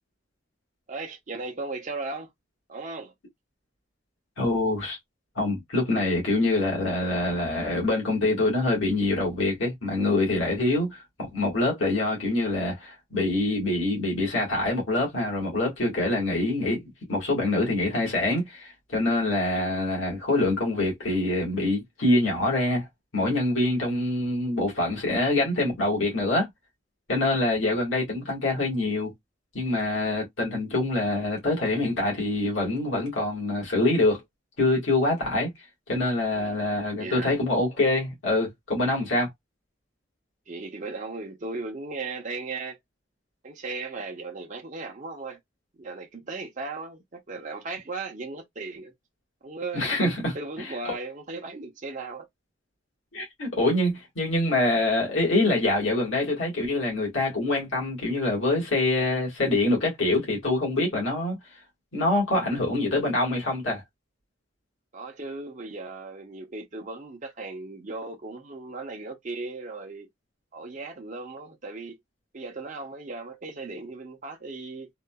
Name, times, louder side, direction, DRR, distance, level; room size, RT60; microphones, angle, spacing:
voice 1, 0.9-2.3 2.7-3.1 36.3-37.4 40.5-42.8 43.4-45.4 45.8-48.9 49.4-52.3 64.9-70.1 70.5-72.0 72.3-74.9, right 3 dB, 40° right, 0.6 m, -37 dB
voice 2, 4.4-5.0 5.4-22.9 23.1-26.5 27.1-29.1 29.5-34.2 34.6-35.5 35.9-39.3 49.7-50.3 50.6-50.7 53.1-61.4 61.9-63.8, left 2 dB, 80° left, 1.7 m, -25 dB
3.7 x 2.4 x 2.2 m
head